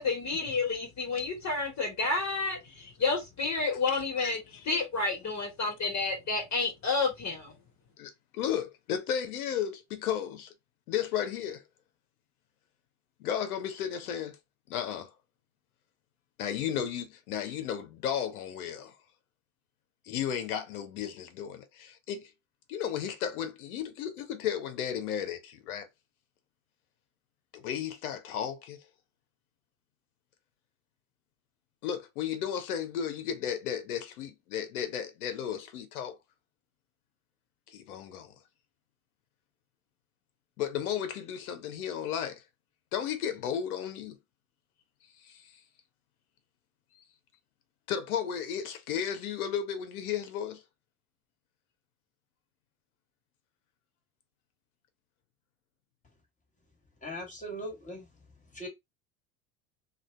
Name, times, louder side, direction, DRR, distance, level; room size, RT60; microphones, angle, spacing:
voice 1, 0.0-4.4 4.7-7.5, left 3 dB, 40° left, 1.5 m, -30 dB
voice 2, 3.9-4.7 8.0-10.5 10.9-11.6 13.2-14.4 14.7-15.1 16.4-18.9 20.0-22.3 22.7-25.9 27.5-28.8 31.8-36.2 37.7-38.4 40.6-42.4 42.9-44.2 45.2-45.6 47.0-47.1 47.9-50.6, left 9 dB, 85° left, 0.8 m, -34 dB
voice 3, 57.0-58.1 58.5-58.7, equal, 15° left, 1.6 m, -39 dB
2.6 x 2.4 x 3.2 m
hypercardioid pair, 85°, 44 cm